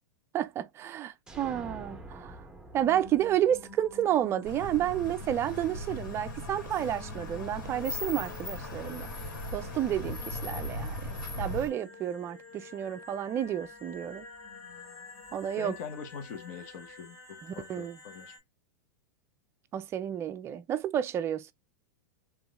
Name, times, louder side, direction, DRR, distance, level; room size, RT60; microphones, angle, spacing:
voice 1, 0.3-2.4 2.7-9.1 9.5-11.1 11.4-14.3 15.3-15.8 17.4-18.0 19.7-21.5, right 11 dB, 25° right, 0.4 m, -31 dB
sound 1, 1.3-5.0, right 1 dB, 5° right, 0.7 m, -48 dB
sound 2, 2.7-18.4, left 2 dB, 35° left, 2.0 m, -50 dB
sound 3, 4.4-11.7, left 2 dB, 90° left, 1.9 m, -38 dB
voice 2, 15.6-18.3, left 6 dB, 55° left, 1.0 m, -43 dB
3.7 x 2.9 x 2.4 m
hypercardioid pair, 130°, 10 cm